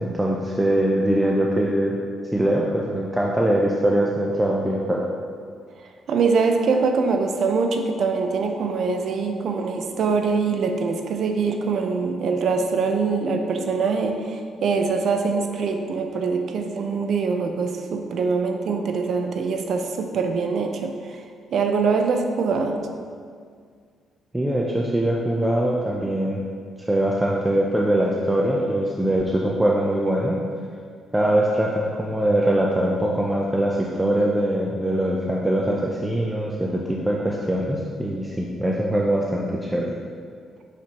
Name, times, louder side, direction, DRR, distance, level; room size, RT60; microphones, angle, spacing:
voice 1, 0.0-2.0 2.3-5.0 24.3-26.4 26.8-30.4 31.1-39.9, right 1 dB, 10° right, -2 dB, 0.5 m, -22 dB
voice 2, 6.1-20.9 21.5-22.8, right 4 dB, 65° right, 5 dB, 0.5 m, -23 dB
5.9 x 5.8 x 2.9 m, 2.1 s
cardioid pair, 90°, 0 cm